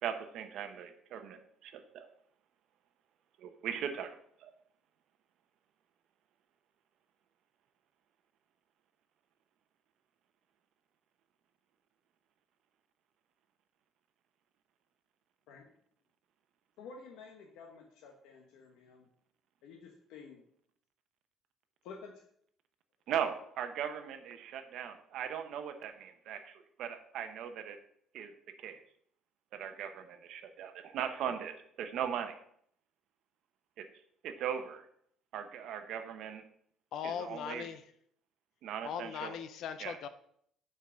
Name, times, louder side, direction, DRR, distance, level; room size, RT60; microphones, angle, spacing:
voice 1, 0.0-2.1 3.4-4.5 23.1-27.8 28.1-28.3 28.6-28.8 29.5-31.5 31.8-32.3 34.2-34.9 35.3-36.4 37.0-37.7 38.6-39.3 39.8-40.0, right 8 dB, 60° right, 7 dB, 0.8 m, -39 dB
voice 2, 16.8-19.1 19.6-20.4 21.8-22.2, left 5 dB, 85° left, 1 dB, 1.0 m, -51 dB
voice 3, 36.9-37.8 38.8-40.1, left 8 dB, 60° left, 11 dB, 0.5 m, -39 dB
5.7 x 4.6 x 6.1 m, 0.66 s
cardioid pair, 160°, 0 cm